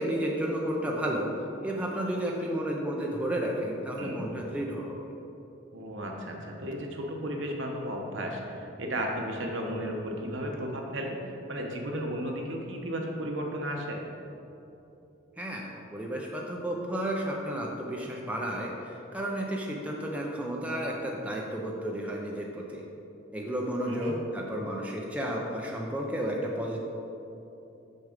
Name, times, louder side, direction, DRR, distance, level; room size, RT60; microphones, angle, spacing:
voice 1, 0.0-1.3 1.6-5.1 15.4-22.8 23.3-26.8, right 1 dB, 5° right, -2 dB, 0.6 m, -32 dB
voice 2, 5.7-14.0 23.9-24.2, equal, 70° right, 1 dB, 1.0 m, -34 dB
6.4 x 6.1 x 5.1 m, 2.9 s
head